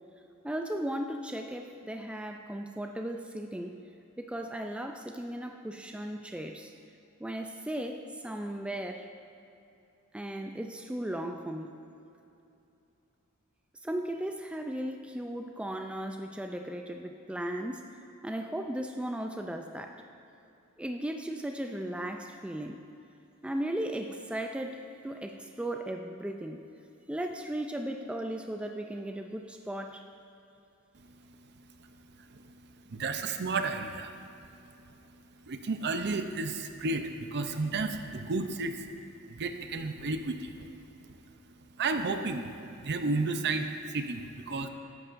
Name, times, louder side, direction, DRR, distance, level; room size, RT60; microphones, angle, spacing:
voice 1, 0.4-3.8 4.2-6.7 7.2-9.1 10.1-11.8 13.8-18.0 18.2-20.0 20.8-22.8 23.4-26.7 27.1-30.0, right 1 dB, 5° right, 4 dB, 0.3 m, -36 dB
voice 2, 32.3-34.5 34.8-34.9 35.4-38.9 39.2-41.2 41.6-42.5 42.8-44.7, right 3 dB, 50° right, 7 dB, 0.6 m, -33 dB
13.5 x 9.8 x 2.6 m, 2.7 s
head